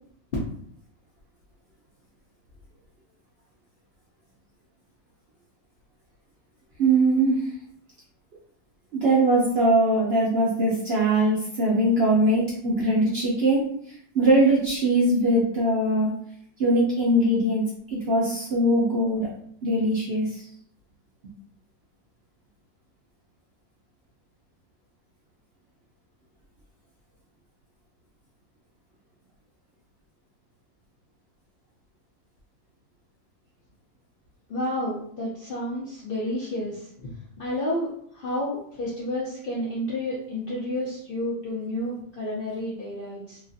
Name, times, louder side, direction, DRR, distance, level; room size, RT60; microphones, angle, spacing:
voice 1, 6.8-7.4 8.9-13.7 14.1-16.1 16.6-17.6 17.9-19.3 19.6-20.5, right 1 dB, 65° right, -5 dB, 0.6 m, -21 dB
voice 2, 34.5-37.1 37.4-37.9 38.1-43.4, left 1 dB, 70° left, -6 dB, 0.5 m, -30 dB
3.0 x 2.4 x 2.5 m, 0.64 s
omnidirectional pair, 1.7 m